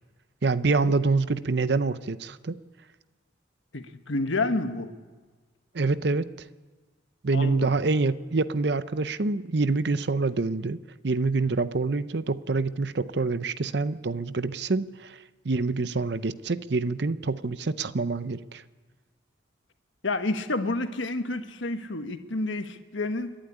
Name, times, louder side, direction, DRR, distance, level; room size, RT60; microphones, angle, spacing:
voice 1, 0.4-2.6 5.7-6.3 7.2-10.8 11.0-15.2 15.4-18.6, right 3 dB, 55° right, 14 dB, 0.7 m, -26 dB
voice 2, 3.7-4.9 7.3-7.7 20.0-23.4, left 2 dB, 70° left, 8 dB, 1.4 m, -29 dB
28.5 x 11.5 x 9.9 m, 1.4 s
head